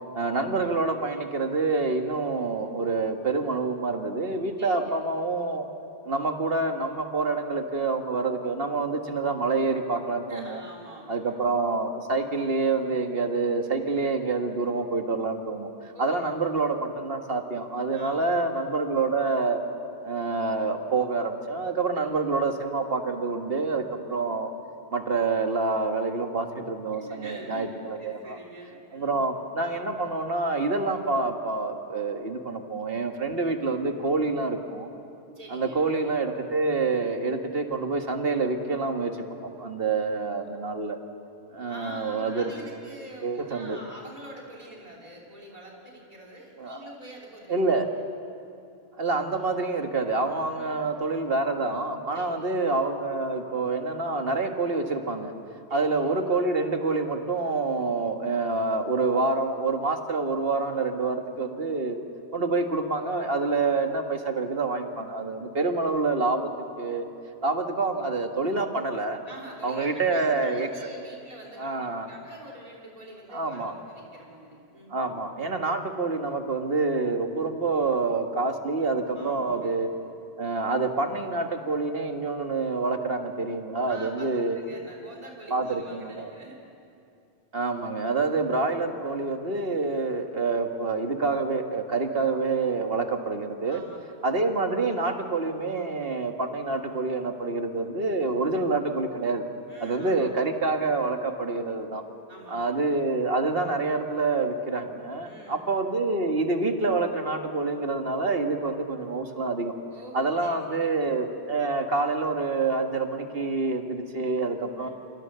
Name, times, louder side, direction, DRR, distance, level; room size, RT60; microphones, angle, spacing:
voice 1, 0.1-5.7 6.0-10.6 11.1-15.7 16.0-19.6 20.0-24.5 24.9-28.4 28.9-34.9 35.5-39.1 39.6-41.0 41.5-42.5 43.2-43.8 46.6-46.9 47.5-47.9 49.0-55.3 55.7-62.0 62.3-67.1 67.4-69.2 69.6-70.7 71.6-72.1 73.3-73.7 74.9-79.9 80.4-84.6 85.5-86.3 87.5-93.8 94.2-99.5 99.8-102.0 102.5-109.7 110.1-114.9, right 3 dB, 60° right, 5 dB, 1.9 m, -27 dB
voice 2, 4.6-5.0 10.3-11.3 15.9-16.4 17.9-18.4 21.9-22.2 26.9-27.7 28.0-29.1 35.3-35.8 40.3-40.5 41.6-47.6 47.9-48.0 50.5-50.9 52.1-52.6 55.7-56.1 69.2-75.2 79.1-79.7 83.9-84.3 84.5-86.6 93.7-94.2 99.7-100.5 102.3-102.8 105.2-105.7 109.9-111.1 114.8-114.9, right 1 dB, 35° right, -3 dB, 3.4 m, -45 dB
28.0 x 25.0 x 6.8 m, 2.6 s
omnidirectional pair, 1.1 m